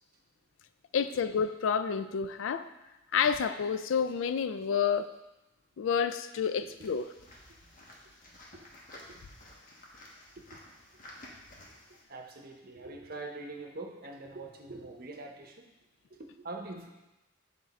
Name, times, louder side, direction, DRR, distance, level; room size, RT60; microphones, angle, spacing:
voice 1, 0.9-2.7 3.1-5.1 5.8-7.1, left 7 dB, 75° left, 11 dB, 0.3 m, -29 dB
sound 1, 6.8-12.0, left 1 dB, 40° left, 1.1 m, -52 dB
voice 2, 12.1-15.7 16.1-16.9, right 2 dB, 50° right, 2 dB, 0.8 m, -44 dB
8.1 x 3.7 x 4.1 m, 1.0 s
head